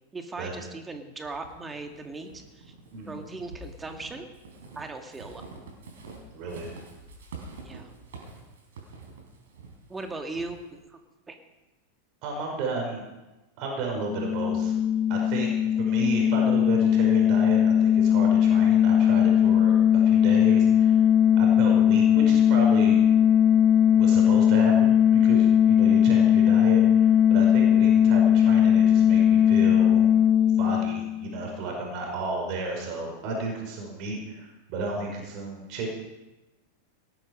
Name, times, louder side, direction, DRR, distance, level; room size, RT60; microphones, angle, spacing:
voice 1, 0.1-2.7 3.1-4.3 4.7-5.4 7.6-7.9 9.9-11.0 11.3-11.4 26.0-26.2, right 3 dB, 15° right, 5 dB, 2.1 m, -38 dB
Walk footsteps / Squeak, 1.2-10.8, right 3 dB, 60° right, 4.2 m, -47 dB
voice 2, 6.3-6.7 12.2-13.0 13.6-14.8 15.1-15.5 15.8-21.0 21.4-23.0 23.9-30.0 30.6-35.9, right 3 dB, 40° right, 0 dB, 5.2 m, -33 dB
sound 1, 14.0-31.5, left 9 dB, 20° left, 0.4 m, -19 dB
18.5 x 13.0 x 5.3 m, 1.0 s
figure-of-eight pair, 90°, 0 cm